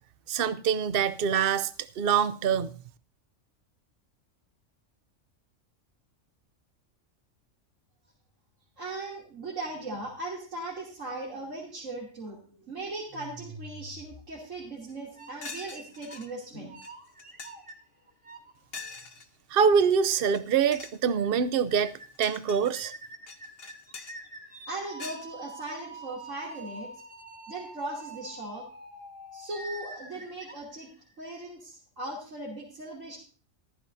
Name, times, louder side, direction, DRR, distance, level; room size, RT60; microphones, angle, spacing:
voice 1, 0.3-1.7 2.0-2.7 19.5-21.9 22.2-22.9, right 7 dB, 55° right, 0.8 m, -24 dB
voice 2, 8.8-16.8 24.7-26.9 27.5-28.7 29.3-30.9 31.2-33.2, right 2 dB, 80° right, 3.3 m, -38 dB
sound 1, 13.1-14.7 15.2-16.4 16.7-18.5 19.0-19.1 20.1-20.2 20.5-20.6 20.9-21.0 21.2-21.4 21.7-22.2 22.6-31.3, right 2 dB, 25° right, 2.0 m, -46 dB
sound 2, 14.9-15.0 15.4-16.3 16.8-16.9 17.2-17.7 18.7-19.3 20.2-20.4 20.7-21.0 21.7-22.7 23.3-24.2 25.0-25.3, left 4 dB, 50° left, 1.4 m, -43 dB
14.5 x 13.5 x 2.7 m
omnidirectional pair, 1.3 m